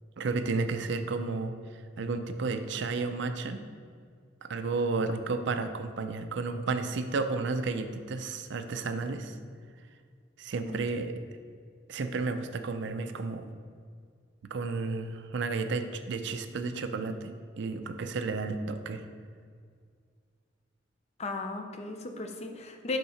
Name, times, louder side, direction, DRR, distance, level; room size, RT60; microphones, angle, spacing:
voice 1, 0.2-1.5 2.0-3.6 4.4-9.4 10.4-11.1 11.9-13.5 14.4-19.0, right 3 dB, 65° right, 8 dB, 0.4 m, -32 dB
voice 2, 10.7-11.1 21.2-23.0, left 3 dB, 35° left, 5 dB, 0.5 m, -36 dB
5.5 x 3.7 x 5.6 m, 2.1 s
head